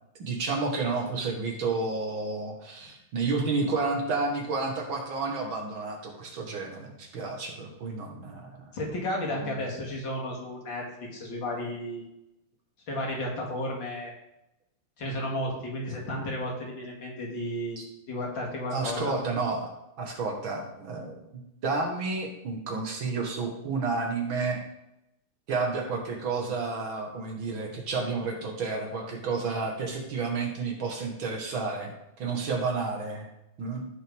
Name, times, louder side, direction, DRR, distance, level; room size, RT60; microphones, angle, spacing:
voice 1, 0.2-8.6 17.8-17.9 18.7-19.7 20.0-24.6 25.5-33.3 33.6-33.9, right 4 dB, 75° right, 1 dB, 2.5 m, -31 dB
voice 2, 8.7-12.1 12.9-14.1 15.0-17.8 18.1-19.1, left 1 dB, 65° left, -2 dB, 2.9 m, -33 dB
15.0 x 5.5 x 3.7 m, 0.86 s
omnidirectional pair, 2.2 m